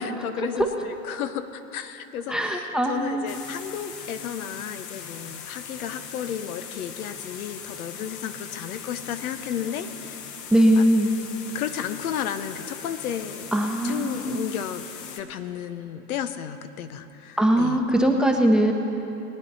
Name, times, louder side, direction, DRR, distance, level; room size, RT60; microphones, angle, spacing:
voice 1, 0.0-10.3 10.8-10.9 11.5-13.5 13.8-14.8 15.2-17.8, left 9 dB, 65° left, 10 dB, 0.9 m, -33 dB
voice 2, 2.3-3.3 10.5-11.1 13.5-14.4 17.4-18.7, right 1 dB, ahead, 3 dB, 1.0 m, -21 dB
sound 1, 3.3-15.2, left 7 dB, 40° left, 1.3 m, -40 dB
21.5 x 9.3 x 4.1 m, 3.0 s
hypercardioid pair, 105°, 46 cm